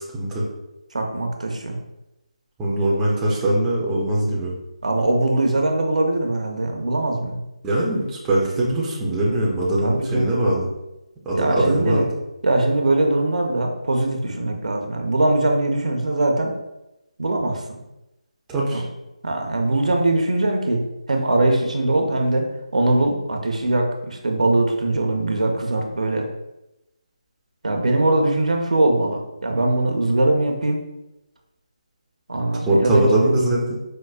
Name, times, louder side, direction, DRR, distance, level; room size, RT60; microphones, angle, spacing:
voice 1, 0.1-0.5 2.6-4.5 7.6-10.7 11.3-12.1 18.5-18.8 32.6-33.8, right 1 dB, 10° right, -5 dB, 0.4 m, -21 dB
voice 2, 0.9-1.8 4.8-7.4 9.8-10.4 11.3-12.0 12.4-16.5 17.2-17.8 18.7-18.8 19.2-20.8 21.1-22.5 22.7-26.3 27.6-30.8 32.3-33.4, right 2 dB, 70° right, 2 dB, 0.6 m, -21 dB
4.4 x 2.1 x 2.3 m, 0.94 s
figure-of-eight pair, 160°, 4 cm